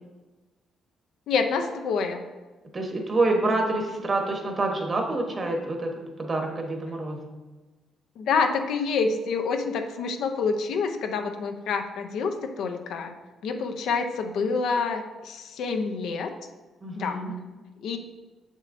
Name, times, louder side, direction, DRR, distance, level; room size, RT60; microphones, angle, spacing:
voice 1, 1.3-2.2 8.2-13.1 13.4-16.3 17.0-17.2 17.8-18.0, left 5 dB, 75° left, 6 dB, 0.5 m, -27 dB
voice 2, 2.7-5.9 6.2-7.2 16.8-17.3, right 2 dB, 35° right, 2 dB, 1.1 m, -27 dB
6.5 x 6.3 x 2.6 m, 1.2 s
cardioid pair, 90°, 0 cm